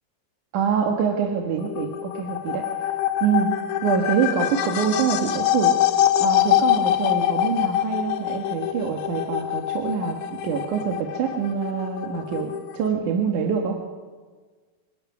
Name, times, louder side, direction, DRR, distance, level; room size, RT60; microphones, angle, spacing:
voice 1, 0.5-2.8 3.2-3.6 3.8-5.8 6.2-13.8, right 7 dB, 65° right, 1 dB, 2.8 m, -25 dB
sound 1, 1.6-12.9, left 12 dB, 70° left, 2.1 m, -24 dB
26.5 x 17.0 x 5.9 m, 1.4 s
omnidirectional pair, 4.0 m